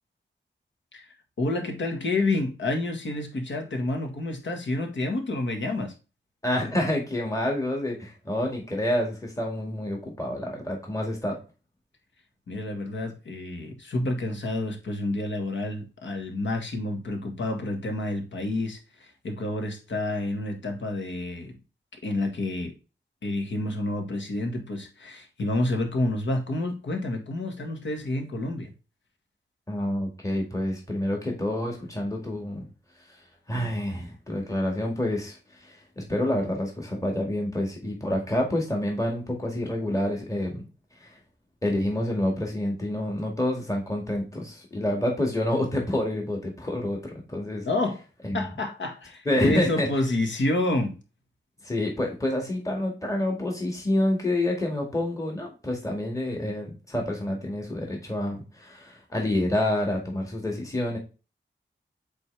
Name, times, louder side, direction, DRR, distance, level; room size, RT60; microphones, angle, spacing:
voice 1, 1.4-5.9 12.5-21.6 21.9-22.7 23.2-28.7 47.6-48.0 48.3-51.0, left 2 dB, 70° left, 1.7 m, -29 dB
voice 2, 6.4-11.4 29.7-32.7 33.5-40.6 41.0-41.2 41.6-47.7 48.2-48.4 49.3-49.9 51.6-61.0, left 1 dB, 15° left, 1.9 m, -28 dB
8.0 x 4.2 x 3.3 m
wide cardioid pair, 150°, 20 cm